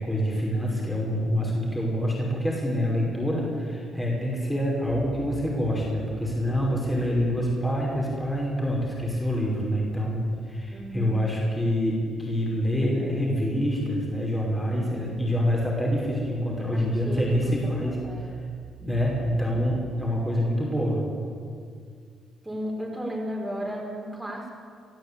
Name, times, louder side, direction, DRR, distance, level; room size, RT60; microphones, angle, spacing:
voice 1, 0.0-18.3 18.8-21.0, equal, 10° left, -3 dB, 5.7 m, -26 dB
sound 1, 4.8-20.5, right 7 dB, 60° right, 1.6 m, -46 dB
voice 2, 10.7-11.2 16.7-18.3 22.4-24.5, equal, 10° right, 1 dB, 5.0 m, -34 dB
22.5 x 13.5 x 8.6 m, 2.2 s
cardioid pair, 90°, 0 cm